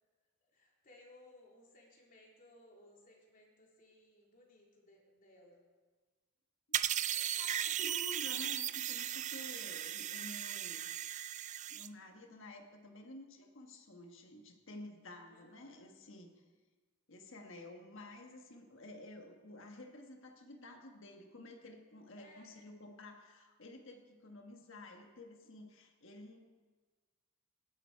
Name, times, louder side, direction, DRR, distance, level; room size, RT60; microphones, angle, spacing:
voice 1, 0.5-5.6 6.9-7.7 15.3-15.8 22.2-22.5, left 1 dB, 40° left, -2 dB, 3.1 m, -62 dB
sound 1, 6.7-11.9, right 11 dB, 35° right, 0.4 m, -37 dB
voice 2, 7.4-10.8 11.7-16.4 17.1-26.4, left 1 dB, 60° left, 3 dB, 1.5 m, -51 dB
19.0 x 11.0 x 4.7 m, 1.4 s
head